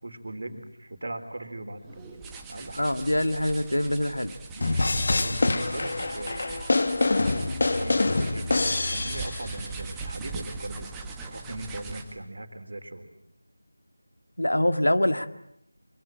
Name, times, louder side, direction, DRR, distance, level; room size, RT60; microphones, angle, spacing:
voice 1, 0.0-2.9 4.5-6.6 7.5-8.5 8.9-10.9 11.2-13.1, right 1 dB, 50° right, 8 dB, 4.0 m, -39 dB
sound 1, 1.8-12.2, right 4 dB, 5° right, 1.6 m, -40 dB
voice 2, 2.8-4.3 14.4-15.3, left 1 dB, 70° left, 9 dB, 1.9 m, -24 dB
sound 2, 4.6-9.6, left 2 dB, 40° left, 1.6 m, -25 dB
26.0 x 25.5 x 8.8 m, 0.76 s
figure-of-eight pair, 165°, 0 cm